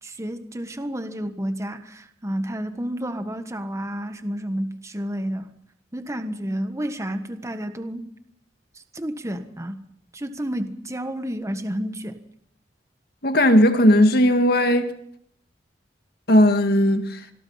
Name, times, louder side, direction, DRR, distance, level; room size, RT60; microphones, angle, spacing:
voice 1, 0.0-5.5 5.9-8.1 8.9-9.8 10.1-12.2, equal, 15° right, 1.4 m, -30 dB
voice 2, 13.2-14.9 16.3-17.2, left 1 dB, 60° left, 2.1 m, -17 dB
25.0 x 21.5 x 5.8 m
head